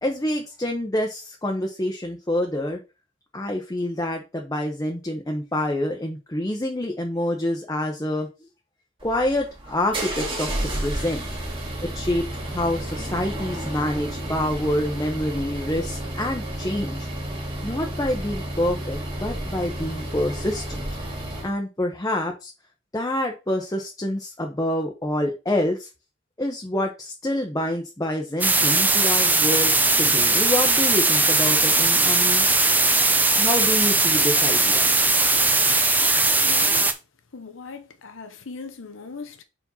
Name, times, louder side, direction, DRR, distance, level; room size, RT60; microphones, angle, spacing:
voice 1, 0.0-2.8 3.3-8.3 9.0-11.3 11.8-17.1 17.6-20.9 21.4-22.5 22.9-25.9 26.4-29.7 30.0-32.4 33.4-34.9, left 1 dB, 20° left, 0.9 m, -27 dB
sound 1, 9.0-21.5, right 1 dB, 25° right, 1.8 m, -31 dB
sound 2, 28.4-36.9, right 3 dB, 10° right, 0.6 m, -19 dB
voice 2, 36.4-36.9 37.3-39.4, left 4 dB, 80° left, 0.9 m, -39 dB
4.8 x 4.3 x 5.5 m
head